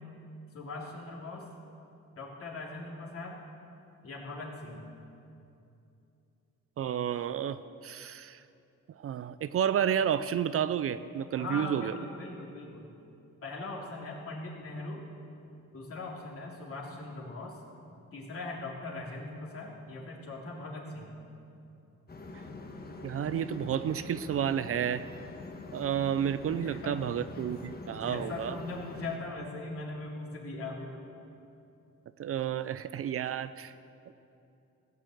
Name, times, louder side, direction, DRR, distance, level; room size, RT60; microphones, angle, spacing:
voice 1, 0.5-1.5 2.2-3.4 4.0-4.8 11.4-12.9 13.4-15.1 15.7-17.6 18.1-21.2 26.5-27.2 27.9-31.1, left 2 dB, 50° left, -2 dB, 3.0 m, -40 dB
voice 2, 6.8-8.4 9.0-11.9 23.0-25.1 25.7-28.6 32.2-33.7 34.1-34.2, right 9 dB, 50° right, 13 dB, 0.5 m, -31 dB
sound 1, 22.1-29.2, left 2 dB, 30° left, 1.4 m, -44 dB
16.0 x 7.5 x 7.8 m, 2.7 s
cardioid pair, 90°, 30 cm